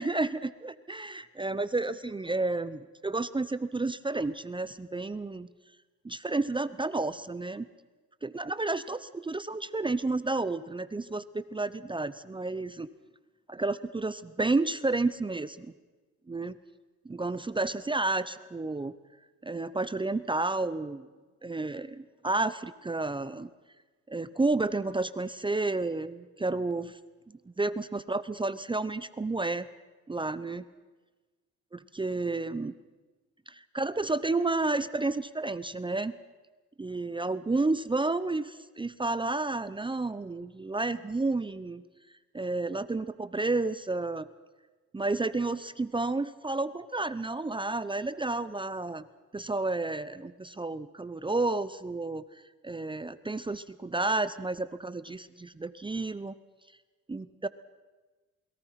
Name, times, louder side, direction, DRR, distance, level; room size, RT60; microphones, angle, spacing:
voice 1, 0.0-5.5 6.0-7.7 8.2-12.9 13.5-15.7 16.3-16.6 17.0-18.9 19.4-21.1 21.4-23.5 24.1-27.0 27.5-29.7 30.1-30.6 31.7-32.7 33.5-36.2 36.8-41.8 42.3-44.3 44.9-49.0 49.3-52.2 52.6-56.4 57.1-57.5, right 3 dB, 15° right, 15 dB, 0.8 m, -31 dB
28.0 x 21.5 x 5.9 m, 1.3 s
cardioid pair, 90°, 30 cm